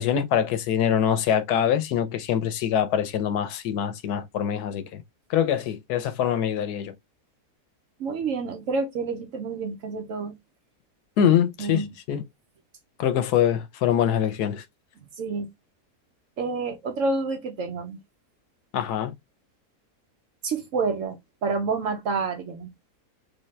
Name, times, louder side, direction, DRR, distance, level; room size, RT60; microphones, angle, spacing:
voice 1, 0.0-5.0 5.3-6.9 11.2-11.8 12.1-12.2 13.0-14.6 18.7-19.1, left 9 dB, 80° left, 1.2 m, -24 dB
voice 2, 8.0-10.3 11.2-11.3 11.6-11.9 15.2-15.5 16.4-18.0 20.4-22.7, right 4 dB, 65° right, 0.9 m, -28 dB
3.5 x 2.8 x 3.1 m
omnidirectional pair, 1.7 m